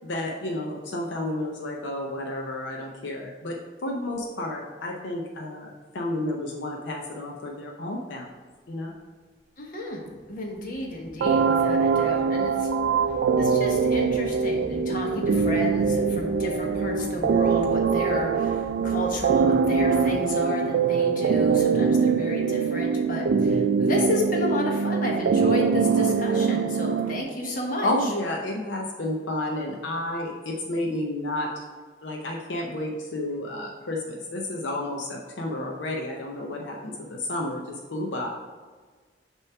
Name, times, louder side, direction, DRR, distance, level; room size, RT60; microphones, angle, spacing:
voice 1, 0.0-3.6 3.8-8.3 8.7-8.9 27.8-31.6 32.0-38.3, left 1 dB, 80° left, 0 dB, 0.7 m, -31 dB
sound 1, 9.0-9.1 9.8-20.5, equal, 10° right, 1.1 m, -44 dB
voice 2, 9.6-12.7 13.4-27.9, left 1 dB, 50° left, -1 dB, 1.3 m, -31 dB
sound 2, 11.2-27.2, right 5 dB, 70° right, 0.4 m, -23 dB
6.5 x 3.0 x 5.8 m, 1.5 s
head